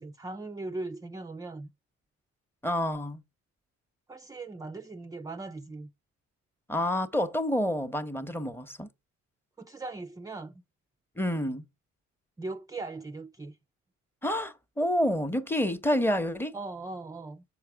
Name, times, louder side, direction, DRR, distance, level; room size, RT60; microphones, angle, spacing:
voice 1, 0.0-1.7 4.1-5.9 9.6-10.6 12.4-13.6 16.5-17.4, right 3 dB, 10° right, 0.4 m, -39 dB
voice 2, 2.6-3.2 6.7-8.9 11.2-11.6 14.2-16.6, left 1 dB, 5° left, 0.8 m, -28 dB
7.5 x 4.7 x 4.5 m
cardioid pair, 90°, 30 cm